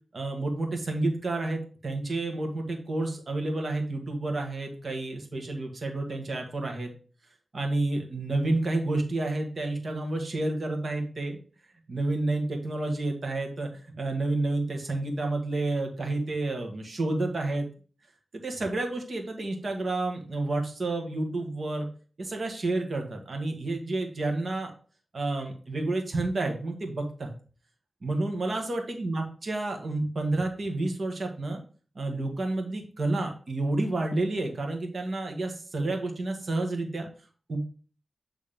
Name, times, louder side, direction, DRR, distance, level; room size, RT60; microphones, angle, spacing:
voice 1, 0.1-6.9 7.5-11.4 11.9-13.7 14.0-17.7 18.4-21.9 22.2-24.7 25.1-27.3 28.0-31.6 31.9-37.1 37.5-37.6, right 2 dB, 65° right, 3 dB, 1.8 m, -30 dB
9.1 x 3.6 x 3.6 m, 0.40 s
cardioid pair, 60°, 0 cm